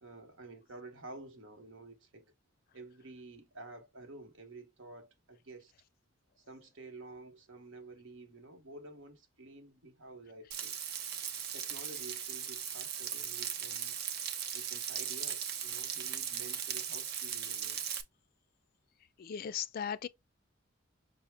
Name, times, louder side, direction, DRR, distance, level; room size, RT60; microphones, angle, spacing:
voice 1, 0.0-2.3 2.7-5.7 6.4-10.8 11.5-14.0 14.5-17.8, right 2 dB, 70° right, 1.0 m, -51 dB
Frying (food), 10.5-18.0, right 8 dB, 55° right, 0.6 m, -38 dB
voice 2, 19.2-20.1, left 8 dB, 45° left, 0.3 m, -37 dB
5.6 x 2.1 x 3.2 m
head